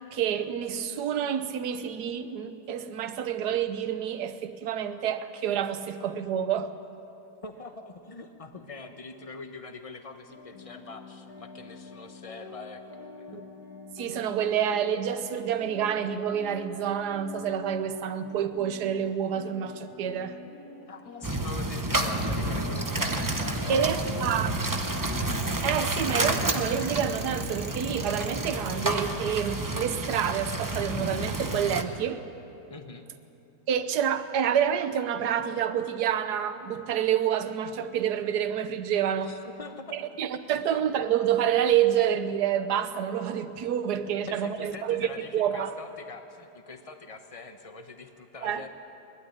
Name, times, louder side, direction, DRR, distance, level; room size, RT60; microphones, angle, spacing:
voice 1, 0.1-6.7 13.3-13.4 14.0-20.4 23.7-24.5 25.6-32.3 33.7-39.4 39.9-45.7 48.4-48.6, right 9 dB, 70° right, 1.4 m, -28 dB
voice 2, 7.4-13.4 20.9-24.8 32.7-33.1 39.2-40.2 44.2-48.7, left 3 dB, 25° left, 1.0 m, -44 dB
sound 1, 10.3-27.3, left 3 dB, 65° left, 2.0 m, -45 dB
sound 2, 21.2-31.8, right 2 dB, 15° right, 0.6 m, -30 dB
21.0 x 12.5 x 9.8 m
omnidirectional pair, 1.8 m